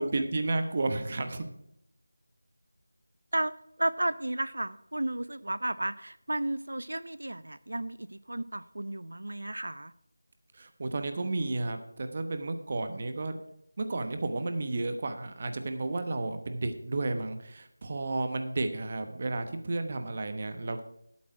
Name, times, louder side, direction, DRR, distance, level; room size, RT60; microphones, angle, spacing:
voice 1, 0.0-1.5 10.5-13.4 13.8-20.8, right 2 dB, 30° right, 8 dB, 1.0 m, -32 dB
voice 2, 3.8-9.9, right 1 dB, 85° right, 16 dB, 0.6 m, -33 dB
11.5 x 8.5 x 4.7 m, 0.79 s
figure-of-eight pair, 175°, 0 cm